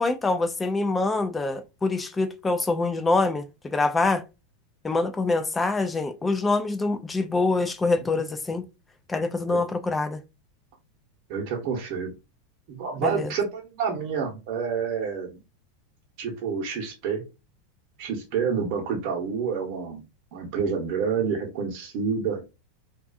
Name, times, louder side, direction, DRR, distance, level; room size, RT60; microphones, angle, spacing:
voice 1, 0.0-4.2 4.8-8.7 9.1-10.2 13.0-13.3, left 3 dB, 15° left, 0.4 m, -25 dB
voice 2, 11.3-12.1 12.7-15.4 16.2-17.2 18.0-20.0 20.3-22.4, right 6 dB, 55° right, 0.9 m, -28 dB
2.4 x 2.4 x 2.4 m
hypercardioid pair, 105°, 0 cm